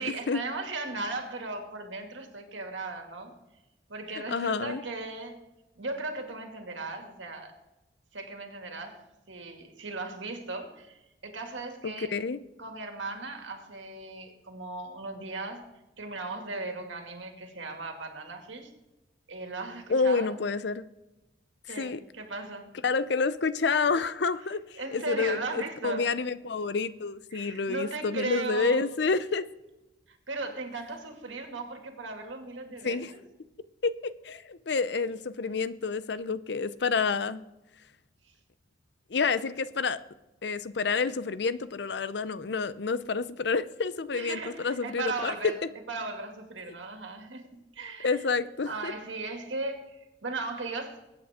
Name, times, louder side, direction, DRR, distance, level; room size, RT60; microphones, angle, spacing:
voice 1, 0.0-3.3 3.9-5.4 5.8-7.5 8.1-9.0 9.3-12.1 12.6-15.6 16.0-18.7 19.3-20.3 21.7-22.7 24.8-26.1 27.3-28.8 30.1-33.2 38.2-38.3 44.1-45.6 45.9-48.2 48.7-51.0, right 3 dB, 90° right, 4 dB, 2.2 m, -37 dB
voice 2, 4.3-4.8 11.8-12.4 19.9-20.8 21.7-22.0 22.8-29.4 32.8-33.1 33.8-37.4 39.1-40.0 40.4-45.5 48.0-48.9, left 4 dB, 65° left, 15 dB, 0.6 m, -29 dB
22.0 x 8.7 x 3.6 m, 1.0 s
head